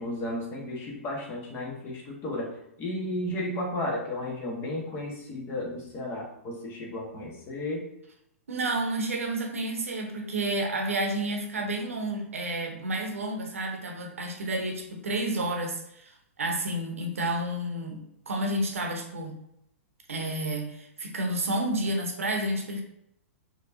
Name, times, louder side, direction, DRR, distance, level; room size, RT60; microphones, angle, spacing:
voice 1, 0.0-2.5 2.8-7.8, left 1 dB, 30° left, -2 dB, 1.2 m, -33 dB
voice 2, 8.5-19.4 20.1-22.8, right 1 dB, 70° right, 2 dB, 0.8 m, -30 dB
4.9 x 2.9 x 2.6 m, 0.77 s
figure-of-eight pair, 110°, 8 cm